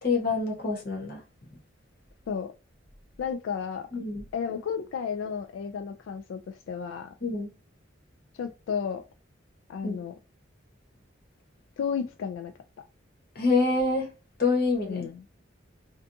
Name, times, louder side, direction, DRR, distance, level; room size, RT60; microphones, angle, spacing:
voice 1, 0.0-1.2 3.9-4.2 7.2-7.5 9.8-10.0 13.4-14.1 14.4-15.1, left 3 dB, 50° left, 1.0 m, -26 dB
voice 2, 3.2-3.9 4.3-7.1 8.4-9.0 9.7-10.1 11.8-12.5 14.8-15.2, left 6 dB, 90° left, 0.3 m, -33 dB
2.5 x 2.3 x 2.6 m
head